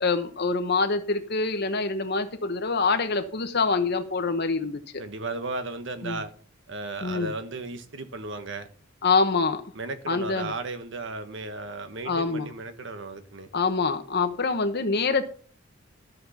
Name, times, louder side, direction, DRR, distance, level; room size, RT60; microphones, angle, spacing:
voice 1, 0.0-5.0 6.0-6.2 7.0-7.3 9.0-9.6 10.1-10.5 12.1-12.5 13.5-15.3, left 4 dB, 55° left, 1.1 m, -25 dB
voice 2, 5.0-6.3 6.7-8.7 9.7-13.5, right 3 dB, 65° right, 1.4 m, -35 dB
13.0 x 6.5 x 5.7 m
head